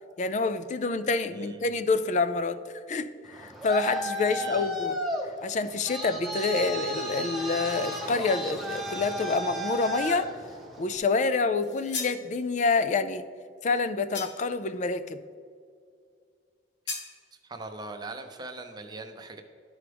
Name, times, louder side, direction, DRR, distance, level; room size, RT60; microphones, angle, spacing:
voice 1, 0.2-2.6 2.9-5.0 5.4-10.3 10.8-13.2 13.6-15.2, left 3 dB, 40° left, 11 dB, 0.4 m, -27 dB
voice 2, 1.3-1.7 4.3-4.7 6.5-6.7 17.4-19.4, right 2 dB, 25° right, 5 dB, 0.6 m, -41 dB
Traffic noise roadway noise, 3.2-11.0, equal, ahead, 0.8 m, -34 dB
sound 1, 11.6-12.2 14.1-14.6 16.9-17.1, left 5 dB, 75° left, 0.9 m, -36 dB
12.5 x 4.8 x 3.4 m, 2.2 s
head